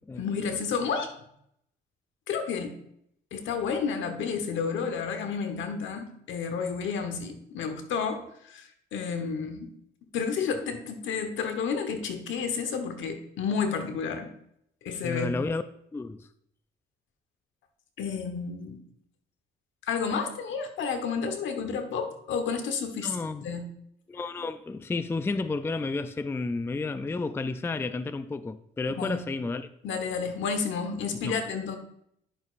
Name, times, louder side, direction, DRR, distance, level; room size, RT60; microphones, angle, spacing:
voice 1, 0.2-1.1 2.3-2.8 3.3-9.7 10.1-14.3 14.8-15.4 18.0-18.8 19.9-23.7 29.0-29.2 29.8-31.8, left 6 dB, 75° left, 1.1 m, -31 dB
voice 2, 15.0-15.6 15.9-16.3 23.0-23.4 24.1-29.7 31.2-31.4, left 3 dB, 10° left, 0.4 m, -31 dB
10.0 x 6.7 x 2.5 m
cardioid pair, 90°, 20 cm